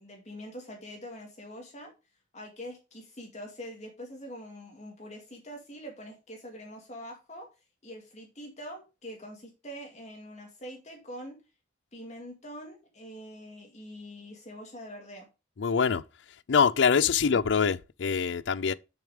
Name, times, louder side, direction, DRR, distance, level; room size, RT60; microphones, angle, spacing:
voice 1, 0.0-1.9 2.3-7.5 7.8-11.4 11.9-15.3, equal, 35° left, 2.3 m, -44 dB
voice 2, 15.6-16.0 16.5-18.7, left 6 dB, 65° left, 0.5 m, -24 dB
7.1 x 6.9 x 4.9 m
head